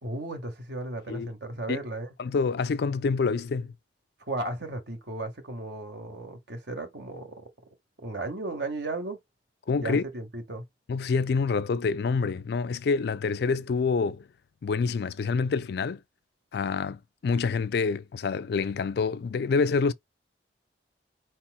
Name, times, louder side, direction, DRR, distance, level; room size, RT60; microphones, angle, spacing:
voice 1, 0.0-2.1 4.3-7.5 8.0-9.2 9.8-10.6, right 2 dB, 70° right, 1.5 m, -35 dB
voice 2, 2.2-3.7 9.7-10.0 10.9-14.3 14.6-16.0 16.5-19.9, left 4 dB, 60° left, 0.4 m, -27 dB
4.6 x 4.2 x 2.2 m
head